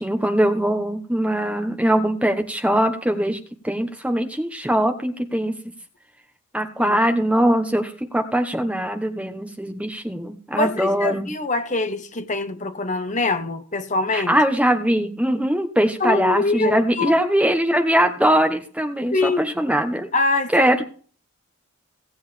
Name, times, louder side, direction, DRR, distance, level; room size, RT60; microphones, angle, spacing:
voice 1, 0.0-3.4 3.6-5.5 6.5-11.3 14.1-20.1 20.5-20.9, right 1 dB, 5° right, 1.1 m, -21 dB
voice 2, 10.5-14.4 16.0-17.2 19.1-19.5 20.1-20.7, left 3 dB, 35° left, 1.1 m, -24 dB
17.5 x 7.8 x 3.4 m
head